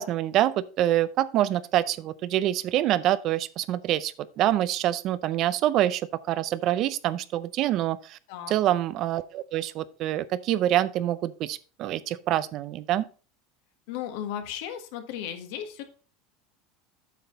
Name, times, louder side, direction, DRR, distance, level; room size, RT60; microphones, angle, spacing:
voice 1, 0.0-6.0 6.3-8.2 8.5-13.1, right 13 dB, 45° right, 0.5 m, -26 dB
voice 2, 13.9-15.8, left 10 dB, 70° left, 1.6 m, -35 dB
8.4 x 5.8 x 3.9 m
supercardioid pair, 135°, 0 cm